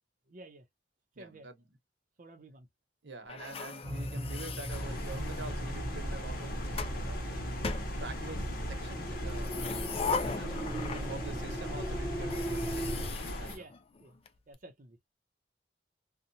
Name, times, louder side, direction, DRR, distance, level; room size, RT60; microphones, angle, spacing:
voice 1, 0.3-0.7 1.2-1.5 2.2-2.7 11.1-11.4 13.4-13.7 14.0-14.2 14.5-15.1, right 2 dB, 50° right, 0.6 m, -52 dB
voice 2, 1.2-1.5 3.0-6.6 7.1-7.2 8.0-13.0 13.4-13.7, right 3 dB, 85° right, 0.9 m, -46 dB
sound 1, 3.3-5.6 6.3-7.0 7.6-8.5 9.3-11.4 11.7-11.8 12.2-14.3, left 5 dB, 35° left, 0.4 m, -39 dB
sound 2, 3.8-13.1, right 1 dB, 15° right, 0.7 m, -38 dB
sound 3, 4.7-13.6, equal, 55° left, 0.9 m, -38 dB
2.8 x 2.2 x 2.6 m
head